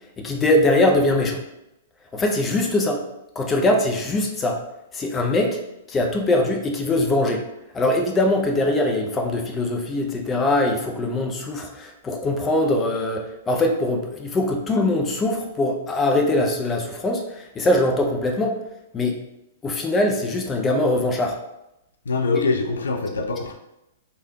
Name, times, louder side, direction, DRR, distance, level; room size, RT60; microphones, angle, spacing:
voice 1, 0.2-1.4 2.1-3.0 3.4-4.6 4.9-5.6 5.9-7.4 7.7-18.6 18.9-19.2 19.6-21.4, left 1 dB, 15° left, 2 dB, 0.5 m, -22 dB
voice 2, 22.1-23.5, left 3 dB, 70° left, 3 dB, 0.4 m, -23 dB
3.3 x 2.2 x 2.8 m, 0.88 s
figure-of-eight pair, 110°, 0 cm